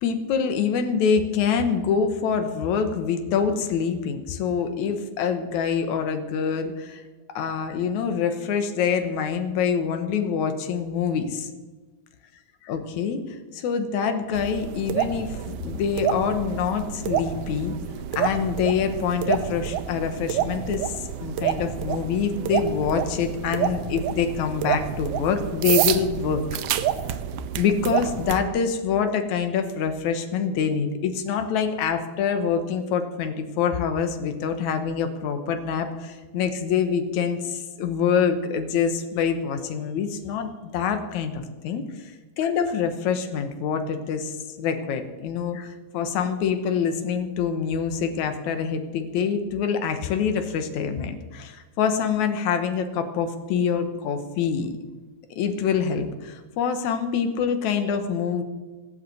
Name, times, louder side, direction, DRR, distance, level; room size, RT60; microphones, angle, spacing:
voice 1, 0.0-7.0 7.4-11.5 12.6-17.8 18.1-20.9 21.2-26.4 27.6-42.1 42.4-54.7 55.4-58.4, left 6 dB, 80° left, 7 dB, 2.5 m, -25 dB
sound 1, 14.3-28.4, right 10 dB, 70° right, 1.5 m, -28 dB
17.5 x 8.2 x 7.9 m, 1.3 s
omnidirectional pair, 3.3 m